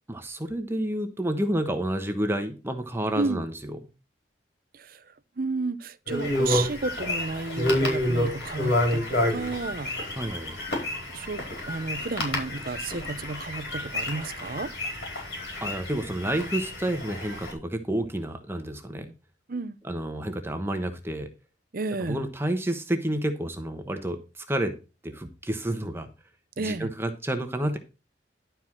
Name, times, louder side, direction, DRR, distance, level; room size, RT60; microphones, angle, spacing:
voice 1, 0.1-3.8 10.2-10.6 15.6-19.1 19.8-21.3 22.0-24.7 25.0-26.1 26.6-27.8, right 1 dB, 15° right, 1.0 m, -30 dB
voice 2, 5.4-9.9 11.1-14.7 19.5-19.8 21.7-22.3 26.6-26.9, right 3 dB, 55° right, 0.7 m, -32 dB
sound 1, 6.1-17.5, left 1 dB, 70° left, 4.8 m, -29 dB
12.0 x 4.6 x 5.8 m
head